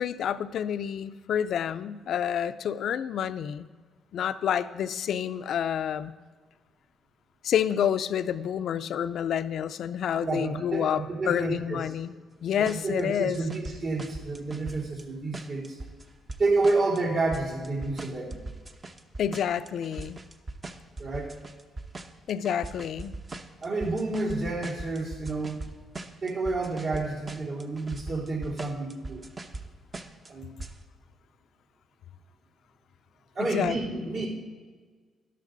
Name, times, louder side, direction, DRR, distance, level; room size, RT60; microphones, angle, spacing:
voice 1, 0.0-3.7 4.1-6.1 7.4-12.1 12.4-13.4 19.2-20.2 22.3-23.2 33.4-33.8, left 9 dB, 70° left, 12 dB, 0.5 m, -28 dB
voice 2, 10.2-11.8 12.7-15.8 16.4-18.4 21.0-21.4 23.6-25.6 26.2-29.2 30.3-30.5 33.4-34.3, right 3 dB, 60° right, -6 dB, 3.8 m, -29 dB
sound 1, 12.7-13.0 13.3-15.0 15.3-17.0 17.3-25.7 25.9-27.0 27.3-29.6 29.9-30.3 30.6-30.8, right 2 dB, 30° right, 0.9 m, -39 dB
12.5 x 11.5 x 4.0 m, 1.5 s
cardioid pair, 90°, 0 cm